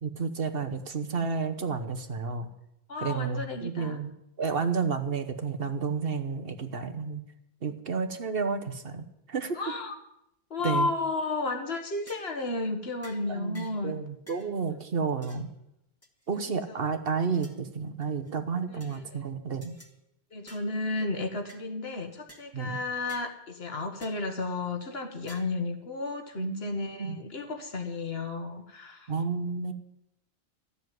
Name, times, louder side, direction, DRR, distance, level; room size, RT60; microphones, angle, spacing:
voice 1, 0.0-2.5 3.0-4.1 4.4-7.2 7.6-9.6 10.6-10.9 13.3-15.5 16.3-19.7 22.5-22.8 26.4-27.2 29.1-29.7, right 5 dB, 65° right, 9 dB, 1.3 m, -31 dB
voice 2, 2.9-4.0 9.5-10.0 10.5-14.0 16.7-16.8 18.7-19.2 20.3-29.1, left 3 dB, 75° left, 5 dB, 1.7 m, -33 dB
sound 1, 11.5-11.7 12.1-12.4 13.0-13.2 13.5-13.8 14.3-14.5 15.2-15.5 16.0-16.5 17.1-17.6 18.0-18.3 18.8-19.0 19.6-19.9 20.5-20.7 21.5-21.6 22.3-22.5 23.1-23.3 24.0-24.3 25.3-25.6, equal, 15° left, 1.5 m, -51 dB
13.5 x 6.9 x 9.3 m, 0.82 s
omnidirectional pair, 1.1 m